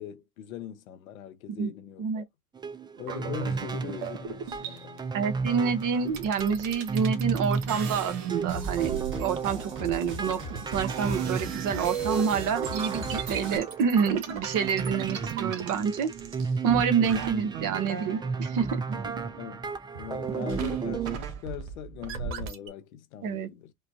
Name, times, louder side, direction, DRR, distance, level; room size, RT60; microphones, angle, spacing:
voice 1, 0.0-2.2 3.0-5.1 19.4-19.7 19.9-23.7, left 11 dB, 85° left, 0.8 m, -41 dB
sound 1, 2.5-21.2, right 5 dB, 10° right, 0.3 m, -34 dB
sound 2, 3.0-5.0 5.8-5.9 6.1-16.8 17.0-19.7 19.9-22.7, right 7 dB, 70° right, 1.2 m, -37 dB
voice 2, 5.1-16.1 16.6-18.8 23.2-23.5, right 6 dB, 50° right, 1.0 m, -28 dB
sound 3, 8.5-13.6, left 1 dB, 30° right, 1.9 m, -40 dB
5.0 x 2.2 x 2.7 m
hypercardioid pair, 75°, 41 cm